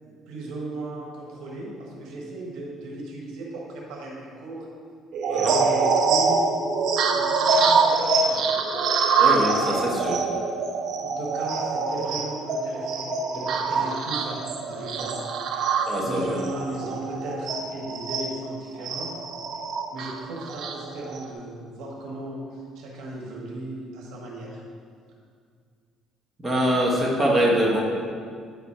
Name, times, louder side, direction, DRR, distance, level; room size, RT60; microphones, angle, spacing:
voice 1, 0.0-4.7 5.3-6.5 7.1-8.6 11.0-15.2 16.0-19.1 19.9-24.6, right 2 dB, 85° right, -3 dB, 1.5 m, -36 dB
sound 1, 5.1-18.3 18.8-21.3, right 4 dB, 65° right, 0.7 m, -24 dB
voice 2, 5.3-5.6 9.2-10.2 15.9-16.4 26.4-27.8, equal, 15° right, -4 dB, 1.3 m, -23 dB
9.1 x 4.0 x 4.3 m, 2.1 s
cardioid pair, 115°, 0 cm